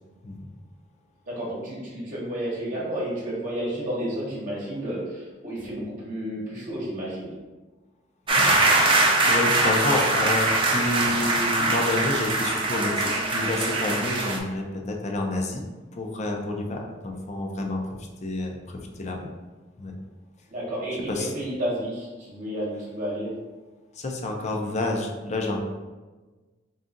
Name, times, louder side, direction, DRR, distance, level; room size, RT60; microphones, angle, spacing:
voice 1, 1.3-7.3 20.5-23.3, equal, 45° right, -6 dB, 1.0 m, -31 dB
sound 1, 8.3-14.4, right 2 dB, 30° right, 0.5 m, -22 dB
voice 2, 9.3-15.6 15.9-17.8 18.2-19.3 19.8-20.0 21.1-21.3 24.0-25.6, left 2 dB, 40° left, 2 dB, 0.5 m, -29 dB
3.8 x 2.4 x 3.7 m, 1.2 s
head